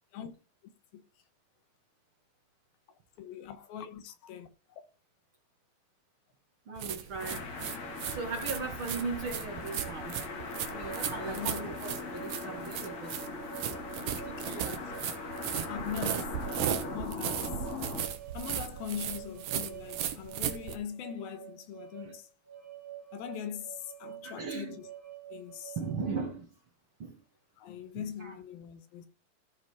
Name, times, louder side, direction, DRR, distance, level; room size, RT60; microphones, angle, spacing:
voice 1, 3.2-4.8 11.0-11.6 14.2-14.9 15.7-17.5 18.3-22.3 23.1-24.9 25.3-25.8 27.6-29.1, left 9 dB, 85° left, 2.9 m, -42 dB
voice 2, 6.7-7.4 8.1-10.2 10.7-13.2 14.0-14.8 22.0-22.1 24.2-24.8 25.8-26.5 27.0-27.2 28.2-28.4, right 4 dB, 45° right, 1.9 m, -38 dB
sound 1, 6.8-20.8, right 10 dB, 65° right, 2.2 m, -36 dB
sound 2, 7.2-18.1, left 4 dB, 50° left, 3.2 m, -40 dB
sound 3, 7.5-26.3, right 11 dB, 20° right, 1.6 m, -49 dB
14.5 x 5.0 x 4.9 m
omnidirectional pair, 4.2 m